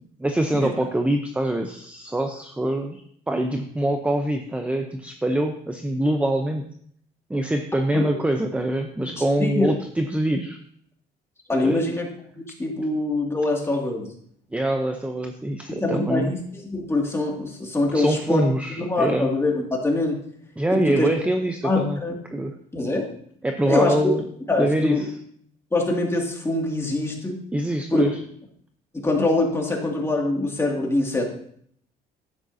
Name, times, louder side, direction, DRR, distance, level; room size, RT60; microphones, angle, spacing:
voice 1, 0.2-6.7 7.3-10.6 11.5-11.9 14.5-16.3 17.9-19.3 20.6-22.0 22.3-22.5 23.4-24.2 24.6-25.0 27.5-28.2, right 1 dB, 5° right, 5 dB, 0.7 m, -24 dB
voice 2, 9.0-9.7 11.5-12.1 12.4-14.1 15.7-16.4 16.7-18.4 18.8-20.2 20.7-21.1 21.6-22.2 22.7-23.1 23.7-24.0 24.5-25.1 25.7-27.4 27.9-28.1 28.9-31.2, left 2 dB, 15° left, 0 dB, 2.3 m, -24 dB
10.5 x 8.9 x 2.7 m, 0.64 s
cardioid pair, 110°, 17 cm